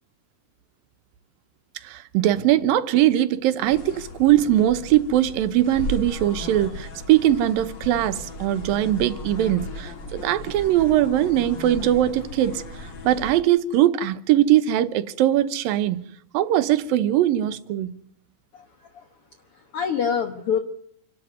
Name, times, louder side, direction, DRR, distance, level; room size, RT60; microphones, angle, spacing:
voice 1, 1.8-16.0 16.3-17.9, right 12 dB, 85° right, 2.8 m, -21 dB
sound 1, 3.6-13.4, left 2 dB, 35° left, 2.3 m, -36 dB
voice 2, 18.5-19.1 19.5-20.6, left 7 dB, 55° left, 1.8 m, -26 dB
27.0 x 12.5 x 9.4 m
omnidirectional pair, 4.0 m